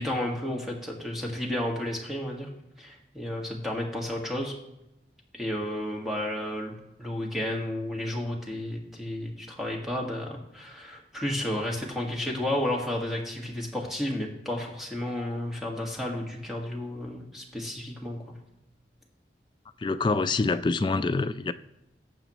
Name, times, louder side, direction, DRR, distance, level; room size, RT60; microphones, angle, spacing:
voice 1, 0.0-2.5 2.8-4.5 5.3-18.4, left 1 dB, ahead, 1.6 m, -32 dB
voice 2, 19.8-21.5, left 3 dB, 25° left, 0.3 m, -26 dB
18.5 x 7.0 x 3.0 m
head